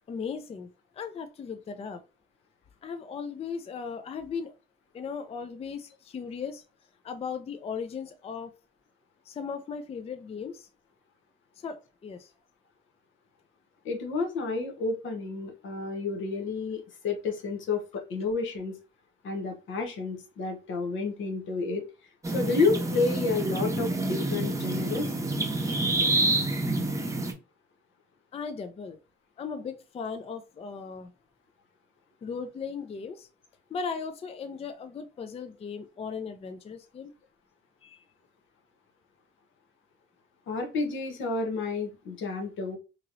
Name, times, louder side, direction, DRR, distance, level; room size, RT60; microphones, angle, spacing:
voice 1, 0.1-0.7 0.9-2.0 2.8-4.5 4.9-6.6 7.0-8.5 9.3-10.7 11.6-12.3 28.3-29.0 29.4-31.1 32.2-33.3 33.7-37.1 37.8-38.0, left 5 dB, 30° left, 8 dB, 0.4 m, -37 dB
voice 2, 13.8-18.8 19.2-21.9 22.3-25.1 40.5-42.8, left 4 dB, 75° left, 3 dB, 0.9 m, -30 dB
sound 1, 22.2-27.3, right 2 dB, 15° right, 0.7 m, -28 dB
3.0 x 2.8 x 2.5 m, 0.31 s
cardioid pair, 90°, 20 cm